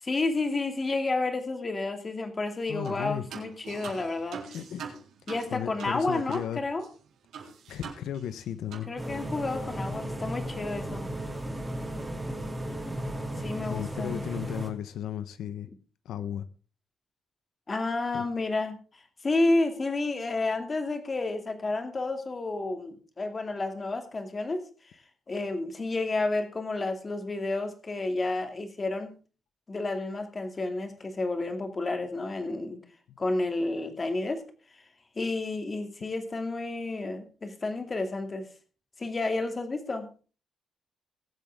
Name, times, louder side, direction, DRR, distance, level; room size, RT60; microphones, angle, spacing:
voice 1, 0.1-4.4 5.3-6.9 8.9-11.1 13.4-14.2 17.7-24.7 25.3-29.1 29.7-32.8 33.2-34.4 34.7-34.8 35.2-38.5 39.0-40.1, left 2 dB, 25° left, 2.5 m, -30 dB
voice 2, 2.7-3.2 4.5-4.9 5.5-6.7 7.7-8.9 13.6-15.7 16.0-16.5 18.1-18.3, left 10 dB, 85° left, 0.9 m, -35 dB
sound 1, 2.8-3.0 3.3-6.5 6.8-6.9 7.3-8.4 8.7-8.9, right 7 dB, 80° right, 3.8 m, -43 dB
sound 2, 9.0-14.7, right 1 dB, 10° right, 2.7 m, -35 dB
21.5 x 8.2 x 3.6 m
cardioid pair, 150°, 0 cm